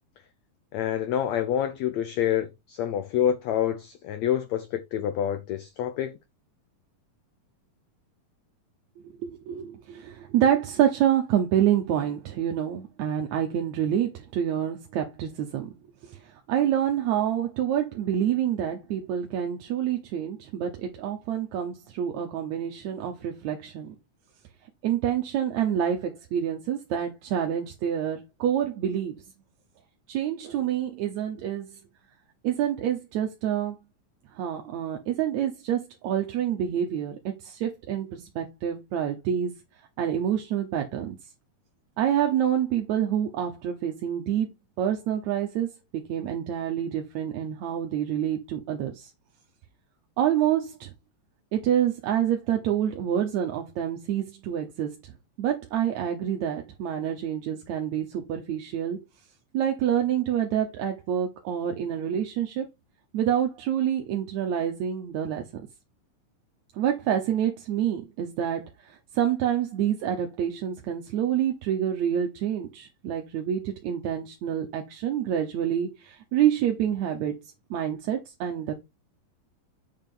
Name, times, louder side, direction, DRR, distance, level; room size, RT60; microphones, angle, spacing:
voice 1, 0.7-6.2, left 10 dB, 85° left, 1.5 m, -27 dB
voice 2, 9.2-15.7 16.1-16.2 16.5-23.9 24.8-29.2 30.1-31.7 32.4-33.8 34.4-39.5 40.0-41.2 42.0-44.5 44.8-45.7 46.1-49.1 50.2-50.9 51.5-55.1 55.4-59.0 59.5-62.7 63.1-65.6 66.8-68.6 68.9-77.4 77.7-78.7, right 10 dB, 65° right, 2.0 m, -27 dB
7.3 x 5.8 x 3.8 m
omnidirectional pair, 4.1 m